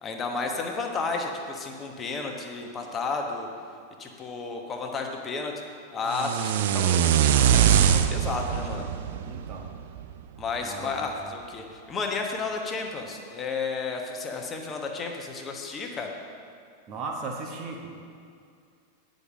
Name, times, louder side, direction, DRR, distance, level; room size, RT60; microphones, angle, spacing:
voice 1, 0.0-3.5 4.0-5.5 5.9-8.9 10.4-16.1, left 4 dB, 20° left, 2 dB, 1.2 m, -32 dB
sound 1, 6.1-10.2, right 9 dB, 55° right, 0.4 m, -23 dB
voice 2, 9.0-9.7 10.6-11.2 16.9-18.0, right 3 dB, 35° right, 1 dB, 1.2 m, -37 dB
9.7 x 5.3 x 7.3 m, 2.3 s
figure-of-eight pair, 90°, 0 cm